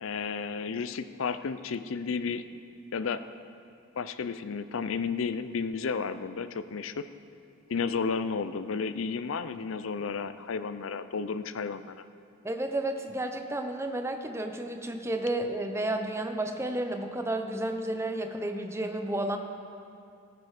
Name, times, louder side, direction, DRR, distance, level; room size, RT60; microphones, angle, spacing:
voice 1, 0.0-2.4 2.9-3.2 4.0-7.1 7.7-11.9, left 5 dB, 75° left, 12 dB, 0.5 m, -32 dB
voice 2, 12.4-19.4, right 1 dB, 15° right, 5 dB, 0.7 m, -32 dB
16.0 x 9.2 x 4.9 m, 2.5 s
head